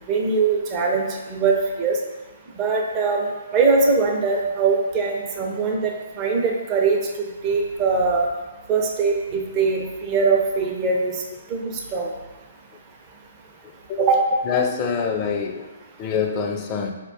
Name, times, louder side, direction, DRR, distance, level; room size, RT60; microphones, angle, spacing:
voice 1, 0.1-2.0 2.6-3.3 3.5-7.0 7.4-8.3 8.7-11.1 11.5-11.6 11.9-12.1 14.0-14.2, right 4 dB, 25° right, -1 dB, 0.5 m, -21 dB
voice 2, 14.5-15.7 16.0-16.9, left 6 dB, 30° left, 4 dB, 0.4 m, -25 dB
4.1 x 2.2 x 2.7 m, 1.2 s
figure-of-eight pair, 130°, 0 cm